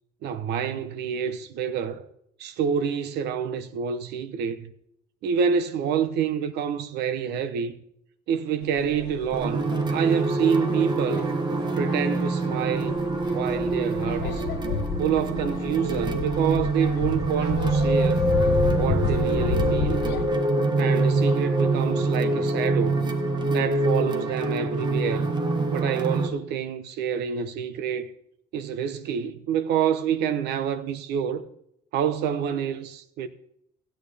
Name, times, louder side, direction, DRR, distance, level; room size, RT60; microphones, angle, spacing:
voice 1, 0.2-2.1 2.4-4.7 5.2-7.7 8.3-11.4 11.8-13.0 13.3-14.5 15.0-18.3 18.7-20.0 20.8-23.1 23.5-25.3 25.7-28.1 28.5-31.4 31.9-33.3, right 7 dB, 80° right, 0.9 m, -27 dB
sound 1, 8.6-20.3, left 5 dB, 80° left, 1.1 m, -31 dB
sound 2, 9.3-26.3, right 2 dB, 25° right, 1.3 m, -25 dB
16.0 x 9.1 x 3.4 m
cardioid pair, 110°, 17 cm